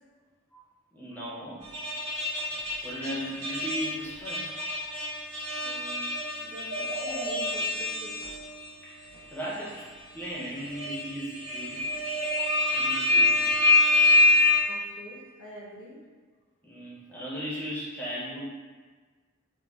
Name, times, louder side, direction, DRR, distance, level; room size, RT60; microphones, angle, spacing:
voice 1, 0.9-1.6 2.8-4.5 8.8-12.2 12.7-13.7 16.6-18.4, equal, 10° left, -7 dB, 0.5 m, -37 dB
sound 1, 1.6-8.7 9.1-9.2 10.2-14.6, left 2 dB, 80° right, 0.7 m, -26 dB
voice 2, 5.6-6.0 6.4-8.1 14.7-15.9, left 1 dB, 75° left, -5 dB, 0.8 m, -44 dB
3.7 x 2.2 x 2.2 m, 1.5 s
head